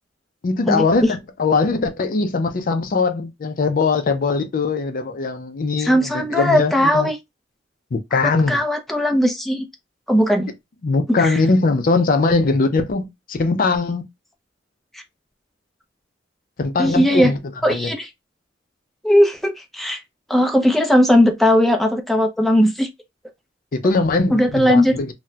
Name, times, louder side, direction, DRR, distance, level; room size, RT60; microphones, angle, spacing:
voice 1, 0.4-7.1 7.9-8.6 10.8-14.0 16.6-17.4 17.7-17.9 23.7-25.1, left 3 dB, 50° left, 0.4 m, -20 dB
voice 2, 5.8-7.2 8.5-9.6 10.1-10.5 11.1-11.4 16.8-17.3 17.6-18.1 19.0-20.0 20.3-22.9 24.3-24.9, equal, ahead, 0.5 m, -17 dB
4.0 x 2.1 x 2.3 m
head